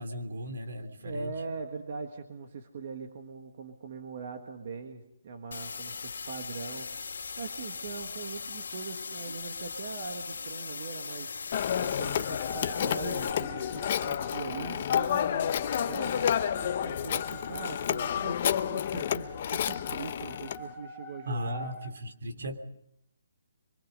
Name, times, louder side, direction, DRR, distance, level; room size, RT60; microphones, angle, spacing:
voice 1, 0.0-1.3 9.3-9.4 21.2-22.6, equal, 65° right, 6 dB, 3.3 m, -37 dB
voice 2, 1.0-11.4 11.8-21.7, right 4 dB, 40° right, 5 dB, 1.7 m, -41 dB
sound 1, 5.5-13.3, left 5 dB, 80° left, 2.2 m, -39 dB
Telephone, 11.5-20.6, left 9 dB, 35° left, 0.8 m, -30 dB
sound 2, 12.4-21.9, left 2 dB, 5° left, 1.1 m, -45 dB
24.5 x 23.5 x 5.4 m, 0.75 s
hypercardioid pair, 175°, 0 cm